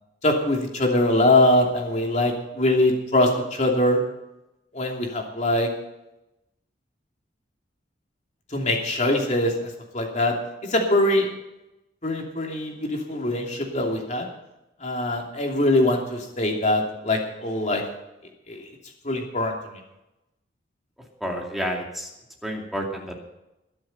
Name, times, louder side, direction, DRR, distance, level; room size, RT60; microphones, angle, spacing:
voice 1, 0.2-4.0 4.7-5.7 8.5-9.7 9.9-10.3 10.7-11.3 12.0-14.2 14.8-17.8 18.5-18.7 19.0-19.8, left 1 dB, 40° left, 1 dB, 2.9 m, -22 dB
voice 2, 21.2-22.1 22.4-23.3, equal, ahead, -1 dB, 2.5 m, -30 dB
22.0 x 7.6 x 5.6 m, 0.91 s
head